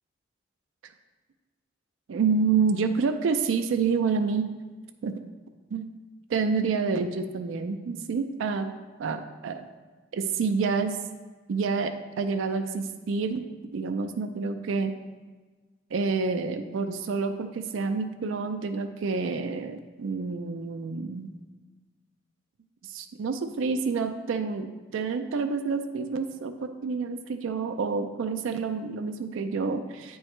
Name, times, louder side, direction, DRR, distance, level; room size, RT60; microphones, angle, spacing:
voice 1, 2.1-4.5 5.0-5.1 5.7-5.9 6.3-8.7 9.0-9.6 10.1-11.0 11.5-13.4 13.7-14.9 15.9-21.4 22.8-24.7 24.9-26.5 26.8-30.2, right 5 dB, 85° right, 7 dB, 0.4 m, -28 dB
8.6 x 4.6 x 3.2 m, 1.3 s
head